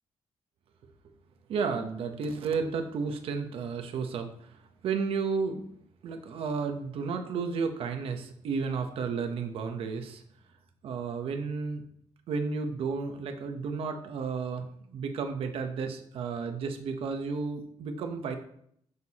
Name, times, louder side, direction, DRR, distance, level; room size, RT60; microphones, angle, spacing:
voice 1, 1.5-5.6 6.0-10.2 10.8-11.8 12.3-18.3, right 5 dB, 65° right, 6 dB, 0.9 m, -32 dB
8.2 x 6.7 x 2.9 m, 0.67 s
cardioid pair, 140°, 10 cm